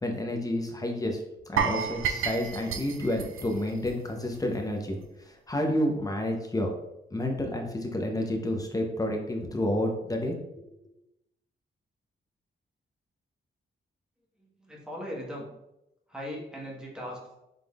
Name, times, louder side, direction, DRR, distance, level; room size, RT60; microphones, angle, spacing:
voice 1, 0.0-1.2 1.5-5.0 5.5-6.7 7.1-10.4, left 1 dB, 15° left, 2 dB, 0.7 m, -29 dB
sound 1, 1.6-4.6 4.8-5.0 5.5-5.6, right 7 dB, 75° right, 0.4 m, -31 dB
voice 2, 14.6-15.5 16.1-17.3, equal, 5° right, -4 dB, 1.2 m, -38 dB
5.2 x 3.7 x 2.3 m, 0.88 s
wide cardioid pair, 130°, 21 cm